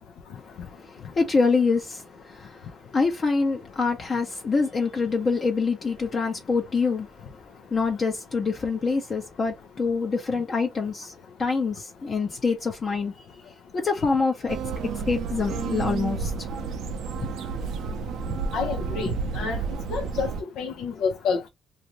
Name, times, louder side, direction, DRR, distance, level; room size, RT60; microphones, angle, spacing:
voice 1, 0.8-7.3 7.7-11.1 11.4-13.3 13.7-14.6 14.9-16.6, left 4 dB, 40° left, 0.8 m, -26 dB
sound 1, 14.5-20.4, right 5 dB, 75° right, 0.5 m, -31 dB
voice 2, 18.5-19.6 19.9-20.3 20.6-21.5, left 5 dB, 80° left, 0.6 m, -28 dB
2.6 x 2.5 x 2.9 m
cardioid pair, 90°, 0 cm